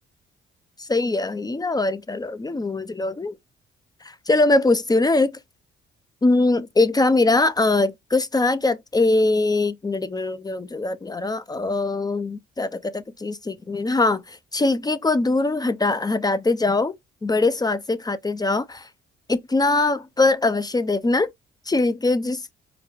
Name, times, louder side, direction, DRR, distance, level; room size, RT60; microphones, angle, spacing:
voice 1, 0.8-3.4 4.3-5.3 6.2-16.9 17.2-18.9 19.3-21.3 21.7-22.4, left 2 dB, 20° left, 0.6 m, -22 dB
4.9 x 2.3 x 3.4 m
cardioid pair, 90°, 20 cm